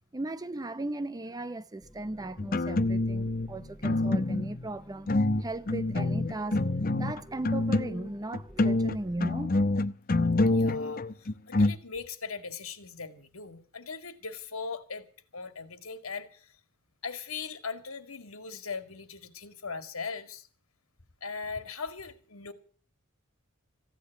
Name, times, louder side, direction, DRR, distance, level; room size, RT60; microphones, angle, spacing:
voice 1, 0.1-5.1 5.4-6.6 6.9-9.6, right 2 dB, 20° right, 0.6 m, -37 dB
sound 1, 1.8-9.2, equal, 5° left, 1.4 m, -53 dB
sound 2, 2.4-3.5 3.8-4.7 5.1-8.1 8.3-11.8, left 2 dB, 45° left, 0.8 m, -26 dB
voice 2, 10.5-15.0 15.3-16.6 17.0-20.5 21.2-22.5, left 5 dB, 75° left, 2.1 m, -39 dB
15.5 x 9.9 x 8.2 m
head